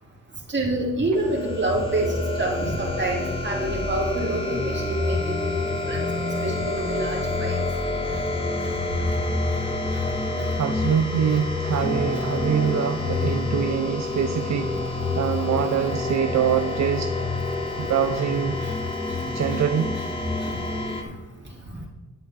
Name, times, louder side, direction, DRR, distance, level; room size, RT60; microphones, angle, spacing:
voice 1, 0.5-5.6 5.9-6.0 6.4-7.6 9.9-10.0 18.6-18.7 20.4-20.6, right 2 dB, 35° right, -2 dB, 2.8 m, -27 dB
sound 1, 1.1-21.0, left 2 dB, 15° left, 1.4 m, -27 dB
sound 2, 6.7-13.0, left 1 dB, 60° left, 2.7 m, -42 dB
voice 2, 10.6-17.2 17.8-18.6 19.3-19.9, right 8 dB, 65° right, 9 dB, 0.5 m, -24 dB
10.0 x 8.9 x 3.6 m, 1.1 s
cardioid pair, 85°, 30 cm